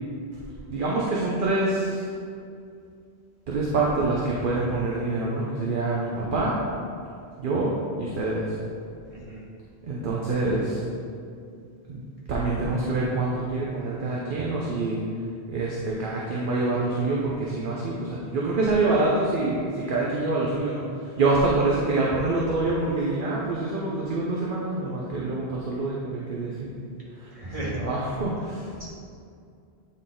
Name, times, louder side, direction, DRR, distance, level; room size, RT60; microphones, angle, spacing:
voice 1, 0.7-2.1 3.5-6.6 7.4-8.5 9.8-10.8 11.9-12.0 12.3-15.0 15.5-27.3 27.8-28.7, right 2 dB, 55° right, -4 dB, 1.0 m, -26 dB
voice 2, 9.0-9.4 27.3-27.7 28.8-28.9, right 2 dB, 30° right, -7 dB, 1.7 m, -35 dB
8.8 x 4.1 x 3.8 m, 2.4 s
omnidirectional pair, 1.1 m